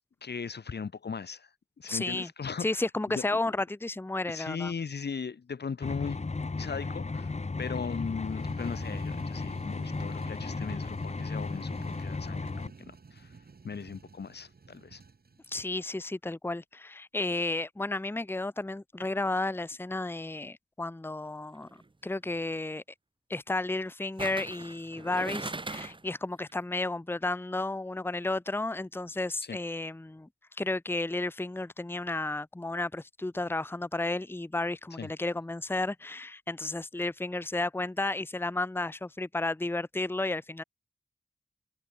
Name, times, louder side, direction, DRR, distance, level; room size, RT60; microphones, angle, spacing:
voice 1, 0.2-1.5 1.8-2.8 3.1-3.2 4.3-6.2 6.6-7.3 7.6-12.7 13.1-13.3 13.6-15.0 29.4-29.6 35.0-35.1, left 5 dB, 60° left, 1.1 m, -38 dB
voice 2, 1.9-2.3 2.6-4.7 15.5-21.7 22.0-22.8 23.3-30.3 30.6-40.6, left 2 dB, 10° left, 0.8 m, -32 dB
sound 1, 5.8-12.7, left 3 dB, 35° left, 1.6 m, -35 dB
sound 2, 8.3-15.7, right 4 dB, 55° right, 2.0 m, -51 dB
sound 3, 21.6-21.8 24.2-26.1 26.5-26.6, right 3 dB, 25° right, 1.2 m, -39 dB
wide cardioid pair, 85°, 19 cm